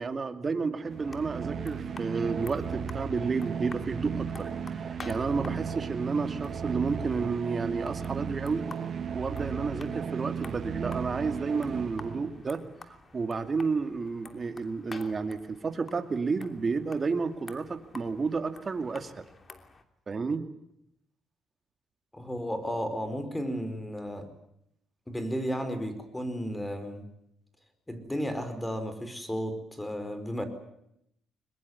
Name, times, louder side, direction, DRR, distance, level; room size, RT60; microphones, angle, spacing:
voice 1, 0.0-8.7 9.1-12.6 13.1-19.3 20.1-20.4, right 4 dB, 35° right, 8 dB, 2.5 m, -31 dB
sound 1, 0.8-12.5, right 7 dB, 55° right, 1.5 m, -35 dB
sound 2, 0.9-19.8, left 4 dB, 35° left, 3.0 m, -51 dB
voice 2, 22.1-24.3 25.1-27.0 27.9-30.4, equal, 10° left, 10 dB, 4.8 m, -33 dB
22.5 x 21.5 x 9.7 m, 0.76 s
cardioid pair, 90°, 0 cm